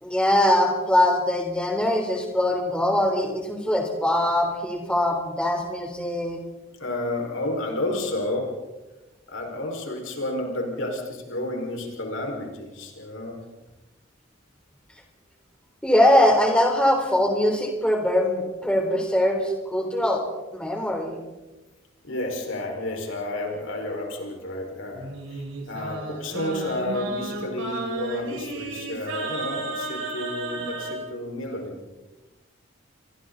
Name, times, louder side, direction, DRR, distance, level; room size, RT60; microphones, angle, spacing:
voice 1, 0.0-6.4 15.8-20.2 20.5-21.2, left 1 dB, 5° left, 2 dB, 3.6 m, -22 dB
voice 2, 6.8-8.5 9.3-13.4 22.0-31.8, left 1 dB, 75° left, 1 dB, 5.0 m, -31 dB
Singing, 24.9-31.0, right 2 dB, 75° right, 7.1 m, -33 dB
29.0 x 24.0 x 4.0 m, 1.1 s
head